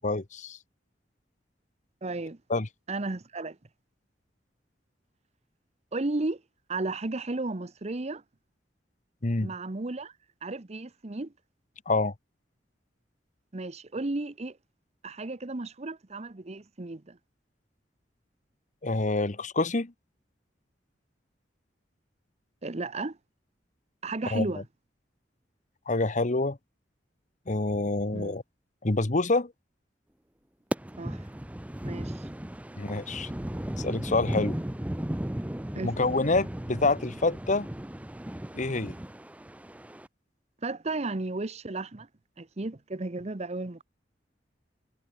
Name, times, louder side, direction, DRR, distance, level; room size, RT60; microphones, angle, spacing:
voice 1, 0.0-0.6 2.5-2.7 9.2-9.5 11.9-12.1 18.8-19.9 24.3-24.4 25.9-26.6 27.5-28.4 28.8-29.5 32.8-33.3 33.8-34.6 35.8-37.7 38.5-38.9, left 2 dB, 45° left, 1.2 m, -27 dB
voice 2, 2.0-2.4 2.9-3.6 5.9-6.4 6.7-8.2 9.4-10.1 10.4-11.3 13.5-14.6 15.0-17.2 22.6-23.2 24.0-24.6 28.1-28.4 31.0-31.2 31.8-32.3 35.7-35.9 40.6-42.1 42.4-43.8, right 2 dB, 40° right, 0.9 m, -34 dB
sound 1, 30.7-40.1, right 1 dB, 10° right, 0.6 m, -36 dB
head